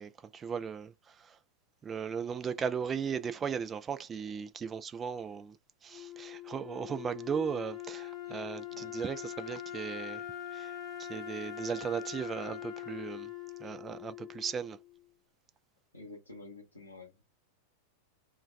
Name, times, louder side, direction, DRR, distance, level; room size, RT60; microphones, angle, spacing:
voice 1, 0.0-1.4 1.8-5.6 5.8-10.2 10.5-10.7 11.0-13.3 13.6-14.8, right 6 dB, 20° right, 0.3 m, -37 dB
Wind instrument woodwind instrument, 5.9-15.0, left 11 dB, 20° left, 0.8 m, -43 dB
voice 2, 8.3-8.9 13.6-13.8 15.9-17.2, left 3 dB, 85° left, 0.6 m, -51 dB
2.2 x 2.2 x 3.1 m
figure-of-eight pair, 90°, 0 cm